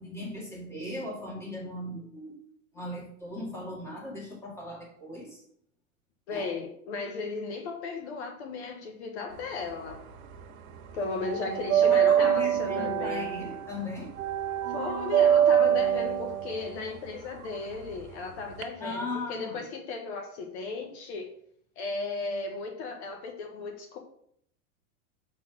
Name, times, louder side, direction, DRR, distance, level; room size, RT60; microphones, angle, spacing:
voice 1, 0.0-2.3 2.7-5.4 6.3-6.5 11.8-14.1 18.8-19.6, left 1 dB, 5° left, -4 dB, 2.1 m, -37 dB
voice 2, 6.3-10.0 10.9-13.3 14.7-21.3 21.8-24.0, left 4 dB, 50° left, 2 dB, 1.4 m, -35 dB
sound 1, 9.4-10.5 10.7-18.6, right 9 dB, 75° right, 1.4 m, -25 dB
7.1 x 4.2 x 5.9 m, 0.67 s
supercardioid pair, 155°, 42 cm